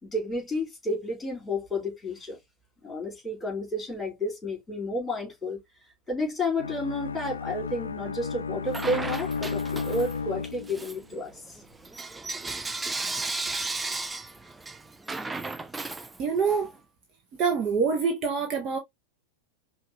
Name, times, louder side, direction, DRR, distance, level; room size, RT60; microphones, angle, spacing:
voice 1, 0.0-2.4 2.8-11.6, left 1 dB, 10° left, 3.5 m, -31 dB
Bowed string instrument, 6.6-11.0, left 5 dB, 75° left, 0.3 m, -33 dB
Bell / Coin (dropping), 8.7-10.2 10.6-16.6, right 3 dB, 10° right, 0.4 m, -35 dB
voice 2, 16.2-16.7 17.4-18.8, right 5 dB, 30° right, 1.0 m, -25 dB
5.7 x 2.7 x 2.9 m
figure-of-eight pair, 90°, 0 cm